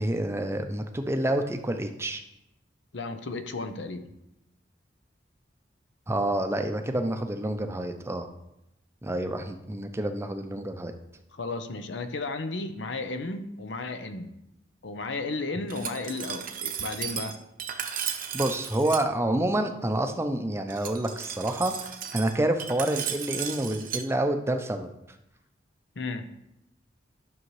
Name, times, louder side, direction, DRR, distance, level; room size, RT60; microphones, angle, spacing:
voice 1, 0.0-2.2 6.1-8.3 9.0-10.9 18.3-24.9, right 1 dB, 15° right, 6 dB, 0.5 m, -28 dB
voice 2, 2.9-4.1 11.3-14.4 14.8-17.4 26.0-26.3, left 3 dB, 75° left, 8 dB, 0.7 m, -34 dB
Glass, 15.7-19.0 20.7-24.0, right 8 dB, 50° right, 0.7 m, -35 dB
11.5 x 6.3 x 3.2 m, 0.86 s
head